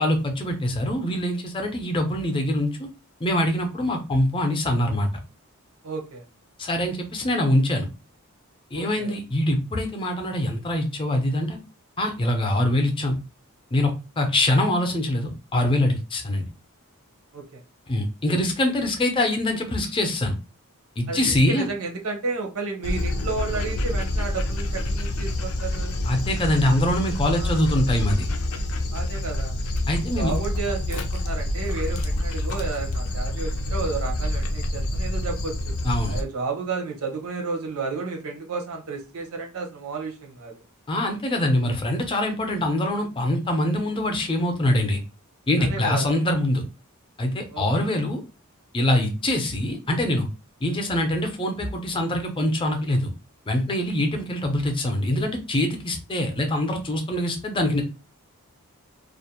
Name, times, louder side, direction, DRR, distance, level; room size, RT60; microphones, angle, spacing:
voice 1, 0.0-2.9 3.2-5.1 6.6-7.9 8.7-11.6 12.0-13.1 13.7-16.5 17.9-20.3 21.0-21.7 26.0-28.3 29.9-30.3 35.8-36.2 40.9-45.0 45.5-46.6 47.2-48.2 48.7-50.3 50.6-53.1 53.5-57.8, left 1 dB, 25° left, 4 dB, 0.5 m, -24 dB
voice 2, 5.8-6.2 8.7-9.2 17.3-17.6 21.1-26.0 27.3-27.7 28.9-29.5 30.1-35.5 36.0-40.6 45.6-46.1 47.5-47.9, right 4 dB, 85° right, 2 dB, 0.7 m, -32 dB
Dog, 22.8-36.2, left 1 dB, 80° left, 0.5 m, -27 dB
2.5 x 2.0 x 2.8 m, 0.30 s
head